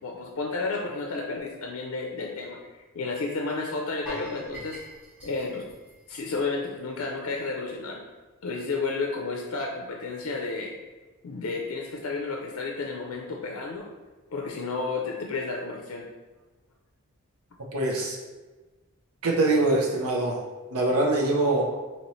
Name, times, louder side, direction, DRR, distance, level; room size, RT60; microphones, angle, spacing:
voice 1, 0.0-4.8 5.2-5.6 6.1-8.0 8.4-10.7 11.2-13.9 14.3-16.1, left 3 dB, 75° left, 0 dB, 0.4 m, -32 dB
sound 1, 4.1-7.1 7.3-7.5 8.0-8.1, equal, 5° right, 1.1 m, -45 dB
voice 2, 17.7-18.2 19.2-20.4 20.7-21.7, right 2 dB, 80° right, -1 dB, 0.6 m, -23 dB
3.0 x 2.9 x 4.2 m, 1.2 s
head